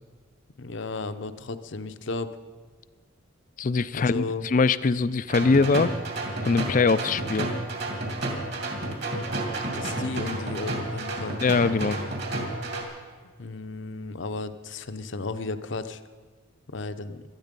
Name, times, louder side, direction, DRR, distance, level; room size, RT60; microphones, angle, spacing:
voice 1, 0.6-2.3 3.9-4.4 9.7-11.4 13.4-16.0 16.7-17.2, left 3 dB, 65° left, 10 dB, 0.8 m, -34 dB
voice 2, 3.6-5.9 6.4-7.5 11.4-12.0, left 4 dB, 40° left, 16 dB, 0.4 m, -22 dB
sound 1, 5.3-12.8, right 2 dB, 55° right, 2.8 m, -31 dB
18.0 x 13.0 x 5.3 m, 1.6 s
head